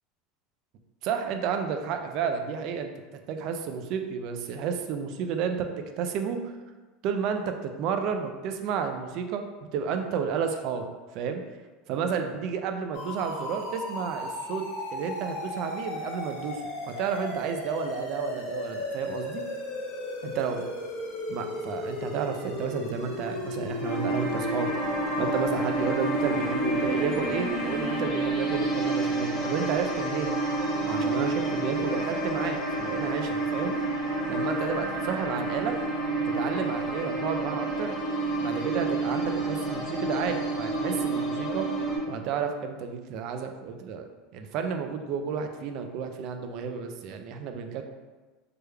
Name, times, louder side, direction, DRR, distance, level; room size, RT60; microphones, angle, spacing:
voice 1, 1.0-2.9 3.3-6.5 7.0-10.8 11.1-11.4 11.9-14.6 14.9-19.4 20.2-20.6 21.3-24.9 25.2-30.3 30.8-33.7 34.3-35.8 36.3-37.9 38.4-41.7 42.1-44.1 44.3-47.8, right 6 dB, 50° right, 6 dB, 0.3 m, -31 dB
sound 1, 12.9-28.0, left 2 dB, 65° left, 0.9 m, -35 dB
sound 2, 23.8-42.0, right 2 dB, 30° left, 1.2 m, -29 dB
3.3 x 2.2 x 3.2 m, 1.3 s
supercardioid pair, 150°, 0 cm